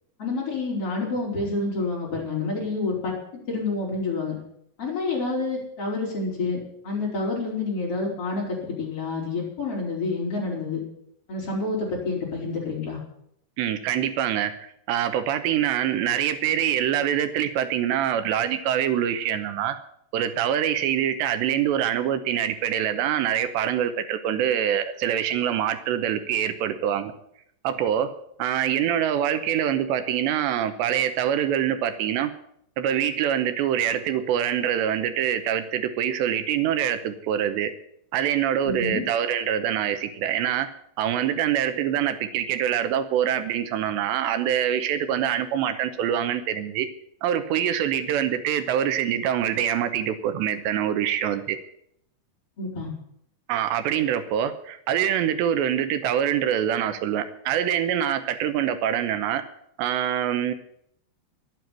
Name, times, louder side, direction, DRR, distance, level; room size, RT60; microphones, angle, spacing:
voice 1, 0.2-3.1 3.5-4.3 4.8-10.8 11.3-13.0 38.7-39.0 52.6-52.9, left 3 dB, 35° left, -3 dB, 5.0 m, -28 dB
voice 2, 13.6-19.8 20.1-27.1 27.6-28.1 28.4-32.3 32.8-37.7 38.1-40.7 41.0-46.9 47.2-51.6 53.5-59.4 59.8-60.5, right 10 dB, 85° right, 10 dB, 3.1 m, -25 dB
12.5 x 9.1 x 9.2 m, 0.72 s
omnidirectional pair, 5.1 m